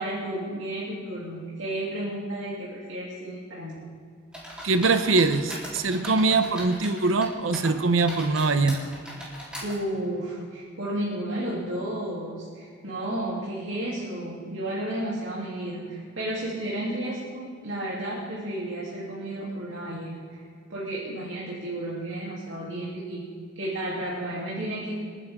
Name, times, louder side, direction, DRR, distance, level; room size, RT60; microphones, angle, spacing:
voice 1, 0.0-3.9 5.9-6.2 9.6-20.4 20.7-23.2 23.5-24.9, right 1 dB, 75° right, -7 dB, 3.2 m, -32 dB
sound 1, 4.3-7.3 7.5-9.7, equal, 5° right, 3.7 m, -39 dB
voice 2, 4.6-8.8, right 3 dB, 90° right, 9 dB, 0.9 m, -23 dB
28.5 x 10.5 x 3.7 m, 2.2 s
head